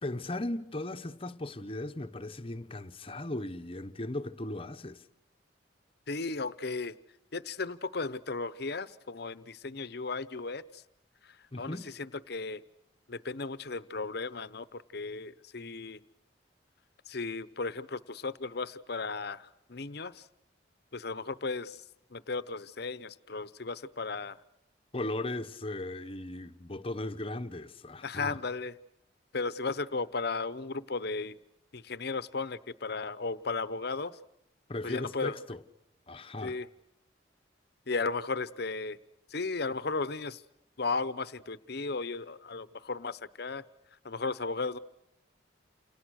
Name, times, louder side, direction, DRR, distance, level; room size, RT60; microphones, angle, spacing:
voice 1, 0.0-5.0 11.5-11.9 24.9-28.4 34.7-35.6 36.1-36.6, left 2 dB, 30° left, 1.0 m, -37 dB
voice 2, 6.1-6.9 7.3-10.8 11.2-12.6 13.1-16.0 17.1-20.3 20.9-21.8 22.1-24.4 28.0-28.8 29.3-31.4 31.7-34.2 34.8-35.4 36.4-36.7 37.9-39.0 39.3-40.4 40.8-43.6 44.0-44.8, left 3 dB, 60° left, 0.9 m, -35 dB
29.0 x 28.5 x 6.5 m
head